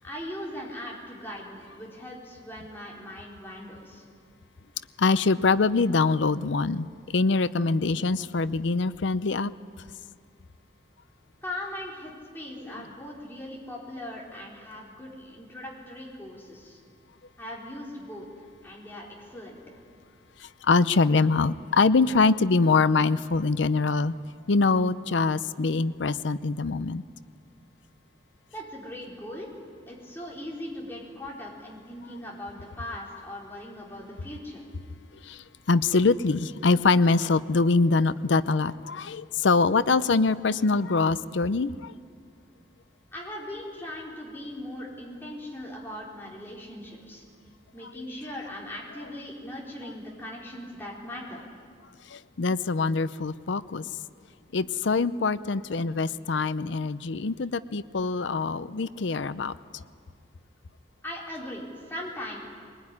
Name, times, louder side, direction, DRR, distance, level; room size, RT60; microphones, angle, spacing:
voice 1, 0.0-4.0 11.4-16.8 17.4-18.3 18.6-19.6 28.5-29.5 29.9-34.7 43.1-47.2 47.7-51.4 61.0-62.4, left 1 dB, 10° left, -4 dB, 4.3 m, -39 dB
voice 2, 5.0-9.5 20.4-24.1 24.5-27.0 35.2-41.9 52.1-53.8 54.5-59.5, left 4 dB, 75° left, 15 dB, 0.6 m, -24 dB
22.5 x 20.5 x 9.8 m, 2.1 s
head